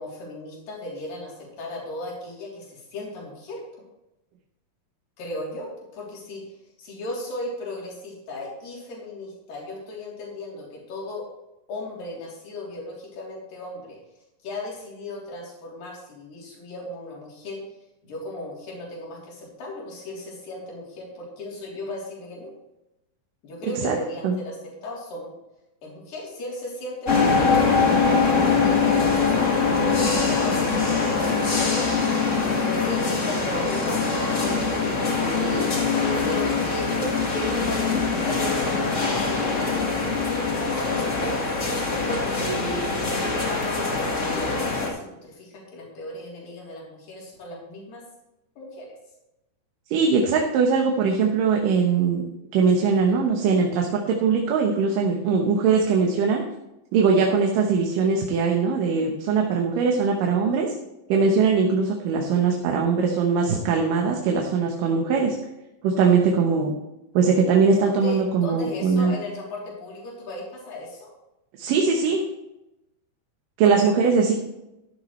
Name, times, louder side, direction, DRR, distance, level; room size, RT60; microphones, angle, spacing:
voice 1, 0.0-3.6 5.2-11.2 11.7-14.0 14.4-17.6 18.0-22.5 23.4-25.3 25.8-27.6 28.2-41.4 41.8-43.3 43.7-48.0 48.6-48.9 59.9-60.0 67.8-71.2 73.6-74.1, left 1 dB, 80° left, -4 dB, 5.1 m, -36 dB
sound 1, 27.0-44.9, left 4 dB, 35° left, 1.4 m, -23 dB
voice 2, 49.9-52.3 52.5-56.4 56.9-60.7 61.1-65.4 65.8-66.7 67.1-69.2 71.6-72.2 73.6-74.3, right 5 dB, 75° right, 1 dB, 2.7 m, -21 dB
13.0 x 12.0 x 3.2 m, 0.92 s
omnidirectional pair, 4.0 m